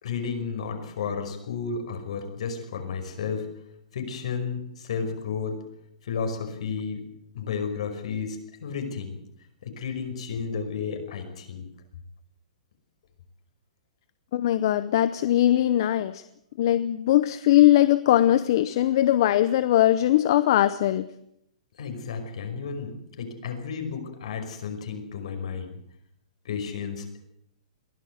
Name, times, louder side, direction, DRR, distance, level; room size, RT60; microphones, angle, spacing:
voice 1, 0.0-3.5 3.9-5.6 6.0-7.0 7.3-9.2 9.6-11.7 21.8-25.7 26.4-27.2, left 6 dB, 60° left, 6 dB, 5.3 m, -32 dB
voice 2, 14.3-16.2 16.6-21.1, left 13 dB, 40° left, 14 dB, 0.7 m, -20 dB
22.5 x 16.0 x 8.0 m, 0.75 s
hypercardioid pair, 175°, 4 cm